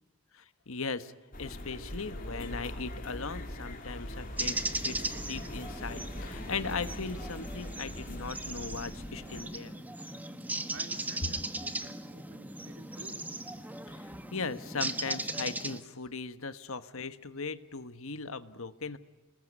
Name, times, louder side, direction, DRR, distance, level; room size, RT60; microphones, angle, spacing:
voice 1, 0.3-1.1 1.4-9.8 13.9-19.0, left 4 dB, 75° left, 12 dB, 1.3 m, -38 dB
sound 1, 1.3-9.4, left 1 dB, 40° left, 3.2 m, -42 dB
sound 2, 4.4-15.8, right 2 dB, 10° right, 1.2 m, -38 dB
voice 2, 10.7-13.4, right 2 dB, 60° right, 4 dB, 4.1 m, -51 dB
29.0 x 20.5 x 9.9 m, 1.1 s
head